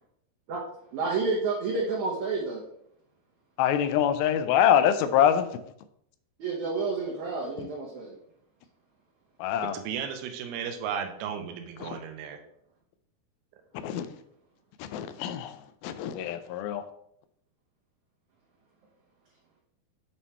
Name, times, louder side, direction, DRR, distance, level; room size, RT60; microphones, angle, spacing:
voice 1, 0.9-2.6 6.4-8.2, right 4 dB, 65° right, 1.9 m, -29 dB
voice 2, 3.6-5.5 9.4-9.8 11.8-11.9 13.8-14.1 14.8-15.6 15.8-16.9, left 9 dB, 80° left, 2.3 m, -24 dB
voice 3, 9.6-12.4, right 7 dB, 80° right, 2.7 m, -35 dB
8.5 x 3.6 x 4.2 m
omnidirectional pair, 4.5 m